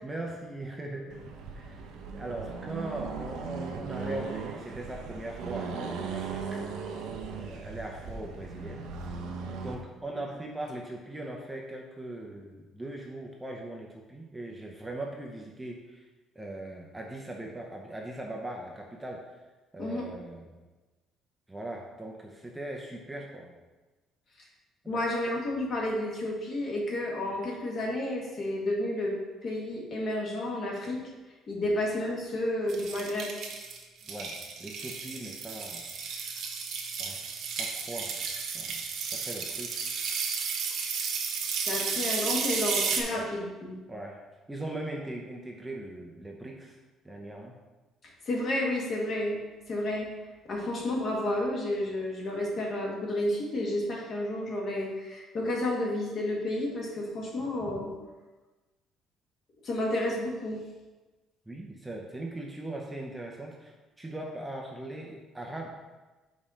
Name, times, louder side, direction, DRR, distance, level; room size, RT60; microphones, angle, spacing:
voice 1, 0.0-1.2 1.6-1.9 2.1-6.6 7.3-8.9 9.6-16.1 16.3-19.4 19.7-20.6 21.5-23.6 24.8-25.0 31.7-31.8 34.1-36.5 37.0-37.2 37.6-38.2 38.5-38.8 39.1-39.9 43.1-43.3 43.9-44.2 44.5-47.5 61.5-65.7, right 1 dB, 10° right, 0 dB, 0.7 m, -40 dB
Accelerating revving vroom, 1.1-9.8, right 5 dB, 80° right, 0.7 m, -38 dB
voice 2, 24.9-29.2 29.4-31.0 31.5-33.3 41.7-43.8 48.3-49.4 49.7-50.1 50.5-57.9 59.6-60.6, left 1 dB, 45° left, -2 dB, 1.7 m, -31 dB
sound 1, 32.7-43.0, right 5 dB, 60° right, 1.1 m, -33 dB
5.4 x 4.2 x 6.1 m, 1.2 s
cardioid pair, 145°, 0 cm